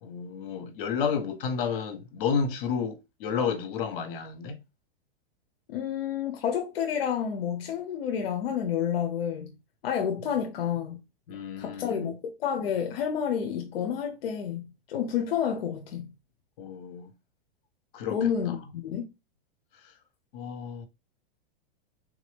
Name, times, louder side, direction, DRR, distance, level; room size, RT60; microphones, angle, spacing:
voice 1, 0.0-4.6 11.3-12.1 16.6-17.1 17.9-18.2 18.5-18.6 19.8-19.9 20.3-20.9, left 6 dB, 65° left, 1.2 m, -31 dB
voice 2, 5.7-9.5 9.8-11.0 11.6-14.6 14.9-16.1 18.1-18.6 18.8-19.0, left 8 dB, 85° left, 0.7 m, -29 dB
3.5 x 2.6 x 3.4 m
supercardioid pair, 145°, 29 cm